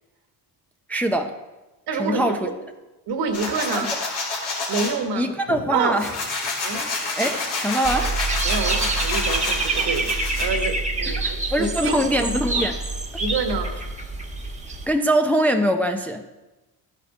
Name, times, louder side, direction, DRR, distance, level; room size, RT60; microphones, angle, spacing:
voice 1, 0.9-1.3 1.9-2.5 3.7-3.9 5.1-6.1 7.2-8.1 11.1-12.8 14.9-16.2, right 1 dB, 5° left, 4 dB, 0.5 m, -23 dB
voice 2, 1.9-2.5 3.1-3.9 4.7-5.3 5.7-6.2 6.6-6.9 8.4-12.3 13.2-13.7, right 4 dB, 60° right, 6 dB, 1.5 m, -27 dB
sound 1, 3.3-4.9 5.5-10.5, left 3 dB, 80° left, 2.8 m, -28 dB
Dog / Bird, 7.8-14.9, right 3 dB, 15° right, 1.3 m, -26 dB
12.5 x 5.2 x 4.2 m, 1.1 s
supercardioid pair, 75°, 44 cm